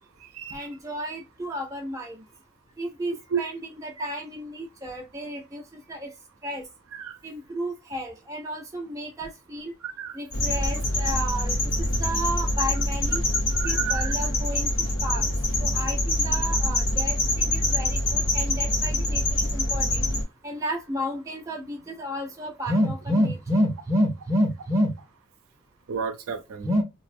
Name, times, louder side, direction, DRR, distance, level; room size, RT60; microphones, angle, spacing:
voice 1, 0.5-2.2 2.8-6.1 6.4-6.6 7.2-9.7 10.1-13.2 13.6-15.3 15.6-20.0 20.4-24.9 26.6-26.8, equal, 15° right, 0.4 m, -30 dB
voice 2, 9.8-10.2 13.6-14.1 25.9-26.7, right 7 dB, 85° right, 0.4 m, -31 dB
sound 1, 10.3-20.2, left 1 dB, 60° left, 0.9 m, -25 dB
2.4 x 2.0 x 2.5 m
head